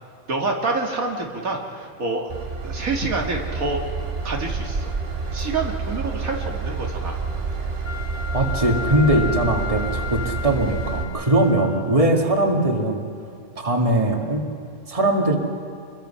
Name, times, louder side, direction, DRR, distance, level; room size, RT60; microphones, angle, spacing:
voice 1, 0.3-2.3 2.6-3.8 4.2-4.9 5.3-7.2, right 3 dB, 85° right, 1 dB, 2.5 m, -27 dB
Train / Engine, 2.3-11.0, right 4 dB, 45° right, 2.0 m, -29 dB
Wind instrument woodwind instrument, 7.8-12.1, left 6 dB, 85° left, 2.2 m, -34 dB
voice 2, 8.3-13.1 13.6-14.4 14.9-15.4, right 1 dB, 25° right, 2 dB, 2.1 m, -20 dB
28.0 x 22.0 x 5.7 m, 2.4 s
omnidirectional pair, 1.4 m